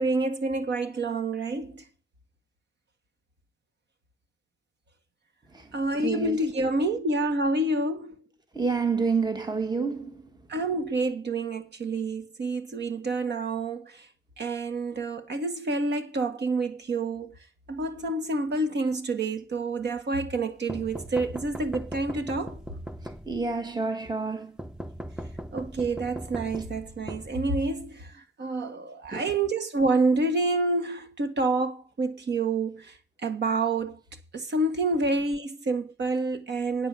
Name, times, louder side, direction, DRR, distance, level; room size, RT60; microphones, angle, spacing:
voice 1, 0.0-1.8 5.7-8.1 10.5-14.1 14.4-17.3 17.7-22.6 25.5-32.9 33.2-34.0 34.3-36.9, right 2 dB, 60° right, 1.7 m, -28 dB
voice 2, 6.0-6.4 8.5-10.2 23.3-24.5 29.1-29.3, right 4 dB, 20° right, 1.3 m, -28 dB
sound 1, 20.7-23.6 24.6-27.9, equal, 5° right, 0.5 m, -39 dB
9.4 x 7.2 x 6.0 m
wide cardioid pair, 160°, 20 cm